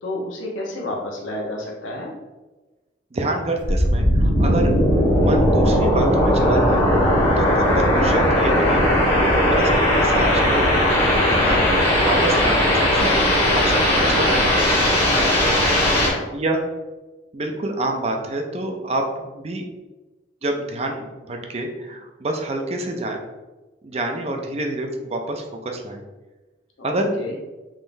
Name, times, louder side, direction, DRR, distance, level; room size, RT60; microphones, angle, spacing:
voice 1, 0.0-2.1 15.9-16.3 26.8-27.4, left 1 dB, 85° left, -2 dB, 0.9 m, -31 dB
voice 2, 3.1-4.7 5.2-6.8 7.4-10.9 11.3-11.7 12.0-13.2 13.5-14.7 15.1-15.3 16.3-16.6 17.3-19.6 20.4-23.2 23.8-26.0 26.8-27.1, right 2 dB, 35° right, 3 dB, 0.4 m, -27 dB
sound 1, 3.6-16.1, left 1 dB, 30° left, 1.2 m, -18 dB
3.7 x 3.3 x 2.6 m, 1.2 s
head